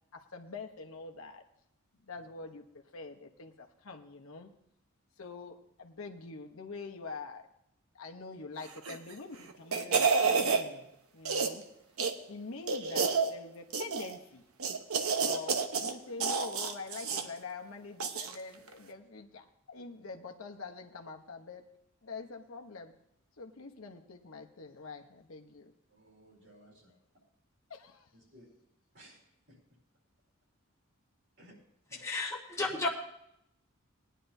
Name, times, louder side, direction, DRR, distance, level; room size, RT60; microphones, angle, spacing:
voice 1, 0.1-1.4 2.1-2.6 2.9-4.5 5.2-7.5 7.9-10.9 11.1-11.6 12.3-14.4 15.2-21.6 22.0-22.9 23.4-25.7 26.4-26.5 27.7-28.1, left 4 dB, 70° left, 3 dB, 0.8 m, -45 dB
sound 1, 8.8-9.1 9.5-10.6 11.3-11.6 12.0-12.1 12.7-13.3 13.7-14.2 14.6-15.9 16.2-17.3 18.0-18.4 18.7-18.8, right 5 dB, 85° right, 0.9 m, -29 dB
voice 2, 25.9-26.9 28.1-28.5 28.9-29.2 31.4-31.6 31.9-32.0 32.5-32.8, right 1 dB, 60° right, -3 dB, 4.5 m, -57 dB
voice 3, 32.0-32.9, left 2 dB, 15° left, -4 dB, 1.2 m, -33 dB
19.0 x 10.0 x 2.7 m, 0.78 s
head